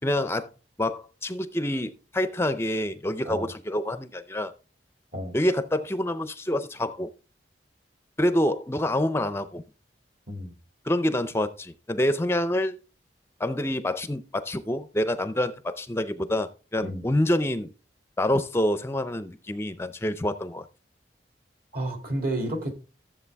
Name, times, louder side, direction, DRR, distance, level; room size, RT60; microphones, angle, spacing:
voice 1, 0.0-0.5 0.8-4.5 5.3-7.1 8.2-9.6 10.9-12.8 13.4-17.7 18.2-20.7, left 1 dB, 15° left, 0.5 m, -27 dB
voice 2, 21.7-22.7, right 1 dB, 55° right, 2.6 m, -31 dB
13.5 x 7.6 x 3.4 m
head